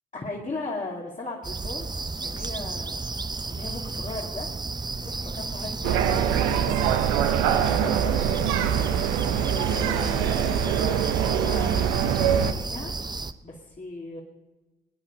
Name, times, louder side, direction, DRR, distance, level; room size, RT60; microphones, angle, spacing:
voice 1, 0.1-1.9 2.2-3.0 3.5-4.5 5.0-6.8 7.4-8.8 9.5-12.9 13.4-14.2, left 2 dB, 35° left, -3 dB, 2.5 m, -37 dB
sound 1, 1.4-13.3, right 3 dB, 20° right, 0.8 m, -33 dB
sound 2, 5.8-12.5, right 9 dB, 80° right, 0.8 m, -24 dB
20.0 x 10.0 x 5.4 m, 1.1 s
hypercardioid pair, 40°, 21 cm